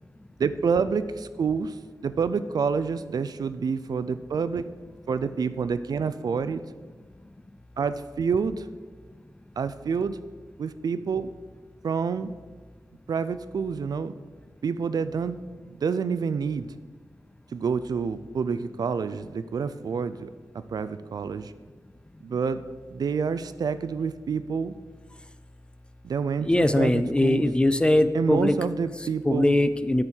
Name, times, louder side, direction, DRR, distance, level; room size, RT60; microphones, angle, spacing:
voice 1, 0.4-1.8 2.0-4.7 5.1-6.6 7.8-8.7 9.6-10.2 10.6-11.3 11.8-12.3 13.1-14.1 14.6-15.4 15.7-16.7 17.5-20.3 20.7-21.5 22.2-22.6 22.9-24.7 26.0-27.4 28.1-29.5, right 5 dB, 75° right, 13 dB, 0.4 m, -28 dB
voice 2, 26.4-28.6 29.2-30.0, left 1 dB, 15° left, 12 dB, 0.3 m, -21 dB
8.7 x 4.4 x 6.3 m, 1.4 s
wide cardioid pair, 130°, 7 cm